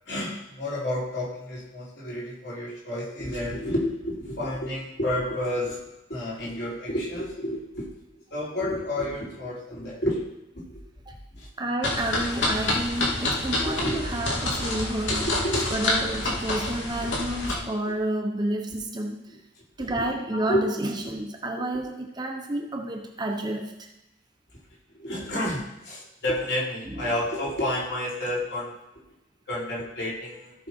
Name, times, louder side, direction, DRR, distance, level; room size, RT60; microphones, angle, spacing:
voice 1, 0.1-5.8 6.1-7.9 8.3-10.2 10.5-10.8 11.3-11.5 13.6-14.1 15.1-15.8 19.8-20.6 25.0-28.7 29.5-30.5, left 1 dB, 60° left, -6 dB, 4.0 m, -30 dB
voice 2, 11.6-15.3 15.7-19.4 19.8-23.9 26.8-27.0, right 1 dB, 20° right, 2 dB, 0.9 m, -30 dB
sound 1, 11.8-17.5, left 2 dB, 85° left, 2.4 m, -28 dB
14.5 x 6.0 x 4.4 m, 0.91 s
head